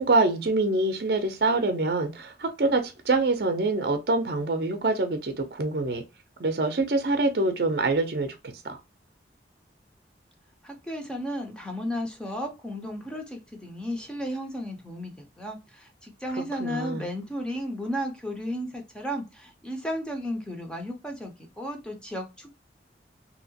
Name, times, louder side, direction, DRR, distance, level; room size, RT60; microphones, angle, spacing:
voice 1, 0.0-6.0 6.4-8.4 8.6-8.8 16.6-17.1, right 2 dB, 60° right, 0.5 m, -25 dB
voice 2, 10.6-22.6, equal, 5° left, 0.6 m, -34 dB
2.9 x 2.8 x 2.7 m
head